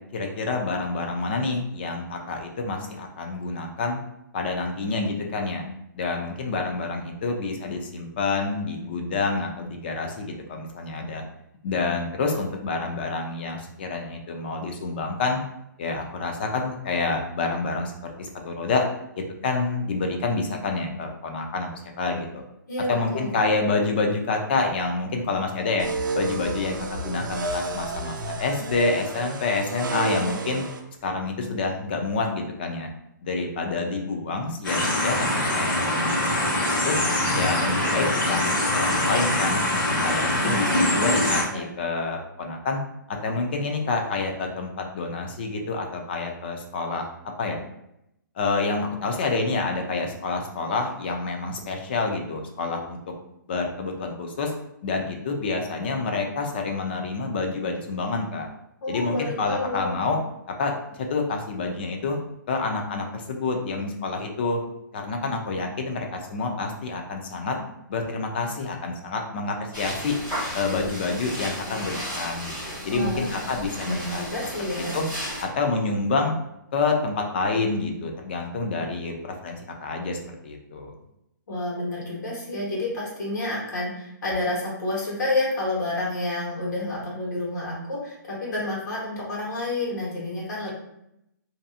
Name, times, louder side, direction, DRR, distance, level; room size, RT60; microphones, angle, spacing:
voice 1, 0.1-4.0 4.3-5.7 5.9-11.2 11.6-15.4 15.8-18.8 19.2-21.7 22.0-22.4 22.9-25.9 26.1-30.6 31.0-32.9 33.2-37.0 37.3-39.6 40.0-42.8 43.1-47.1 47.4-47.6 48.4-53.0 53.5-54.5 54.8-58.5 58.9-60.2 60.5-62.2 62.5-64.6 64.9-67.6 67.9-70.2 70.5-74.2 74.8-75.0 75.4-76.3 76.7-80.9, left 3 dB, 30° left, 3 dB, 0.4 m, -28 dB
voice 2, 22.7-23.4 40.4-41.6 58.8-59.9 72.9-73.3 73.8-74.9 81.5-90.7, left 2 dB, 60° left, -6 dB, 1.2 m, -29 dB
sound 1, 25.8-30.8, right 2 dB, 70° right, 0.5 m, -31 dB
sound 2, 34.6-41.4, left 1 dB, 80° left, 1.0 m, -23 dB
sound 3, 69.7-75.4, equal, 10° left, 1.2 m, -34 dB
2.6 x 2.6 x 2.4 m, 0.80 s
hypercardioid pair, 165°, 11 cm